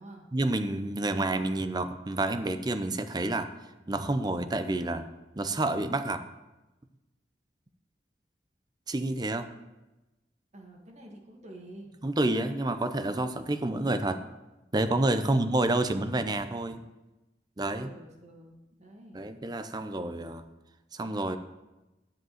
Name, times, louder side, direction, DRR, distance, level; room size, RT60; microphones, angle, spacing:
voice 1, 0.3-3.5 3.9-5.1 5.4-6.2 8.9-9.5 12.0-14.2 14.7-16.8 17.6-17.9 19.1-20.4 20.9-21.4, right 2 dB, 25° right, 10 dB, 0.6 m, -29 dB
voice 2, 10.5-11.9 15.1-15.6 17.6-19.2, right 1 dB, 40° right, 0 dB, 1.8 m, -48 dB
10.0 x 5.2 x 7.8 m, 1.0 s
head